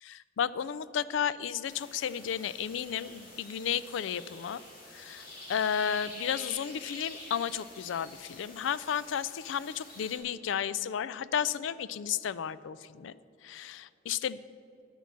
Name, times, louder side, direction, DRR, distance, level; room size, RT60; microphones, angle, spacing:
voice 1, 0.0-4.6 4.9-13.1 13.4-14.4, left 8 dB, 80° left, 18 dB, 0.4 m, -33 dB
sound 1, 1.6-10.2, left 1 dB, 50° left, 2.5 m, -48 dB
8.9 x 8.3 x 7.3 m, 2.6 s
head